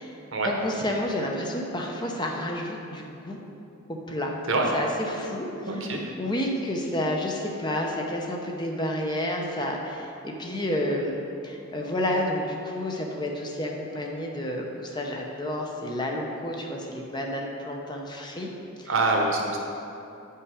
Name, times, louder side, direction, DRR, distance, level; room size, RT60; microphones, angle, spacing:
voice 1, 0.4-3.4 3.9-4.3 4.7-5.9 6.2-18.5 18.8-18.9, left 1 dB, 20° left, 0 dB, 0.7 m, -30 dB
voice 2, 5.7-6.1 18.8-19.6, right 2 dB, 60° right, 0 dB, 1.1 m, -25 dB
8.5 x 5.7 x 4.9 m, 2.8 s
head